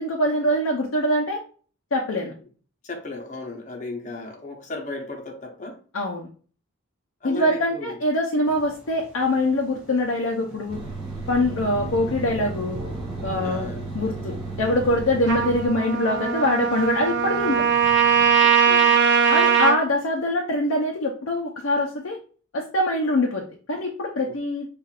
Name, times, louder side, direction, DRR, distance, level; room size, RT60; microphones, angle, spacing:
voice 1, 0.0-1.4 1.9-2.3 5.9-6.3 7.2-10.8 11.3-12.8 13.2-17.7 19.3-22.2 22.5-24.7, left 1 dB, 70° left, 0 dB, 0.6 m, -24 dB
voice 2, 2.8-5.8 7.2-8.0 13.4-13.9 18.4-19.0 24.3-24.4, left 2 dB, 35° left, 2 dB, 0.8 m, -35 dB
sound 1, 8.4-18.3, equal, 5° right, 1.4 m, -42 dB
sound 2, 10.7-15.7, right 3 dB, 30° right, 1.6 m, -34 dB
Trumpet, 15.3-19.8, right 7 dB, 60° right, 0.6 m, -20 dB
5.6 x 2.5 x 2.4 m, 0.41 s
head